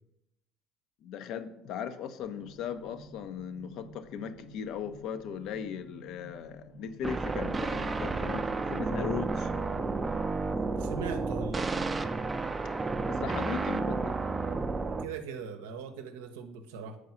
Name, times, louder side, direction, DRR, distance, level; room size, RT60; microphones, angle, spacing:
voice 1, 1.0-8.4 8.7-9.5 13.1-14.1, left 7 dB, 60° left, 10 dB, 0.5 m, -38 dB
sound 1, 2.2-10.4, equal, 85° left, 1.3 m, -51 dB
sound 2, 7.0-15.0, right 3 dB, 25° right, 0.5 m, -31 dB
voice 2, 10.7-11.7 14.9-17.0, right 5 dB, 80° right, 7 dB, 0.6 m, -40 dB
4.9 x 4.7 x 5.5 m, 0.83 s
hypercardioid pair, 65°, 0 cm